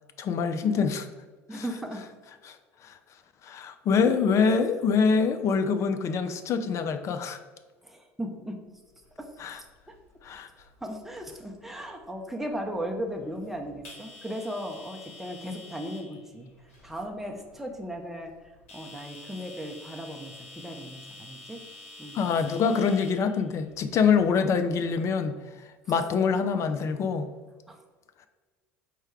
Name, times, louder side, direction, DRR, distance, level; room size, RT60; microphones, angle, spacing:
voice 1, 0.2-1.1 1.5-1.6 2.5-2.6 2.8-2.9 3.4-7.4 9.4-9.6 10.2-10.5 22.1-25.4 25.9-27.3, left 5 dB, 40° left, 9 dB, 0.4 m, -25 dB
voice 2, 1.5-2.0 4.1-4.4 7.8-8.6 9.2-9.7 10.8-16.5 16.8-21.6 22.0-22.3 27.7-27.8, equal, 5° right, 2 dB, 0.7 m, -37 dB
sound 1, 8.8-24.9, left 3 dB, 75° left, 1.2 m, -50 dB
4.6 x 2.2 x 4.5 m, 1.4 s
hypercardioid pair, 70°, 7 cm